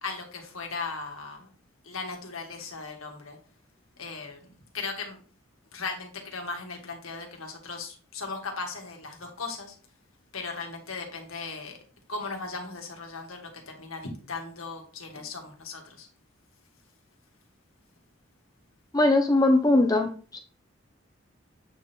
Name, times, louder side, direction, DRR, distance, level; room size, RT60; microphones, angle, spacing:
voice 1, 0.0-1.5 1.8-3.4 4.0-4.4 4.7-5.2 5.7-9.8 10.3-11.8 12.1-16.1, left 4 dB, 85° left, 2 dB, 1.9 m, -37 dB
voice 2, 18.9-20.4, left 2 dB, 15° left, 5 dB, 0.6 m, -21 dB
8.3 x 3.6 x 4.4 m, 0.40 s
head